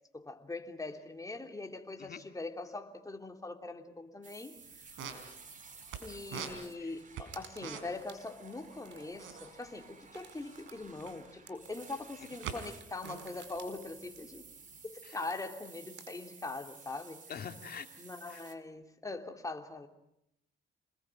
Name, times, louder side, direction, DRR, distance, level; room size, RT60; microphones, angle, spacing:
voice 1, 0.1-4.6 6.0-14.5 14.8-17.2 18.0-19.9, left 3 dB, 15° left, 4 dB, 3.1 m, -42 dB
sound 1, 4.2-18.5, right 5 dB, 40° right, 3.1 m, -54 dB
sound 2, 4.6-4.7 4.8-6.0 6.3-8.1 8.3-8.5 8.8-11.3 11.8-12.6 12.9-14.8, right 8 dB, 90° right, 4.2 m, -44 dB
sound 3, 6.7-6.8 7.1-9.3 9.5-16.2, right 6 dB, 65° right, 4.5 m, -58 dB
voice 2, 17.3-17.9 18.3-18.4, left 7 dB, 50° left, 7 dB, 2.5 m, -44 dB
28.5 x 21.0 x 9.1 m, 0.80 s
cardioid pair, 90°, 20 cm